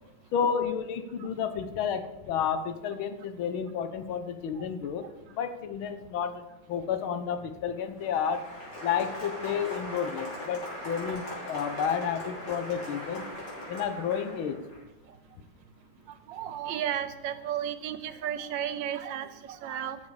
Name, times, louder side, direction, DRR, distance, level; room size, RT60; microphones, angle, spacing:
voice 1, 0.3-8.4 8.8-13.3 13.7-14.6, left 7 dB, 75° left, 10 dB, 1.7 m, -31 dB
Applause, 7.8-14.8, left 1 dB, 55° left, 4.2 m, -40 dB
voice 2, 16.3-20.0, right 10 dB, 70° right, 11 dB, 1.3 m, -33 dB
13.0 x 7.5 x 4.8 m, 1.0 s
omnidirectional pair, 2.3 m